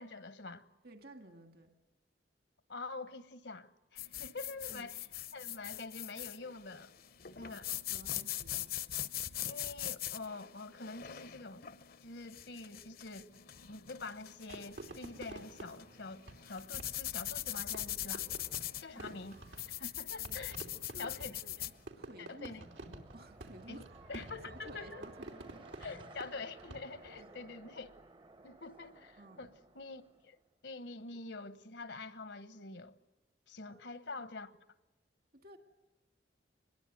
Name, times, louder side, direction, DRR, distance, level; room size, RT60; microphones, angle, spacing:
voice 1, 0.0-0.6 2.7-5.0 5.3-6.9 7.4-7.7 9.4-11.6 12.0-13.3 13.7-18.3 18.8-19.4 19.8-20.6 21.0-21.7 22.3-22.7 23.7-23.8 24.1-25.0 25.8-27.9 28.4-30.4 30.6-33.0 33.5-34.5, left 3 dB, 75° left, 1.2 m, -46 dB
voice 2, 0.8-1.7 4.7-4.9 7.4-7.6 7.9-8.7 18.9-19.2 20.1-20.4 20.9-21.7 22.0-23.9 24.2-25.4 25.8-26.0 27.2-27.3 29.2-29.5 33.6-34.2 35.3-35.6, right 1 dB, 60° right, 1.9 m, -55 dB
sound 1, 4.0-21.8, left 12 dB, 55° left, 0.8 m, -42 dB
Fireworks, 14.5-27.2, right 2 dB, 90° right, 3.2 m, -51 dB
sound 2, 21.5-30.5, right 2 dB, 30° right, 0.8 m, -58 dB
24.5 x 21.0 x 9.2 m
head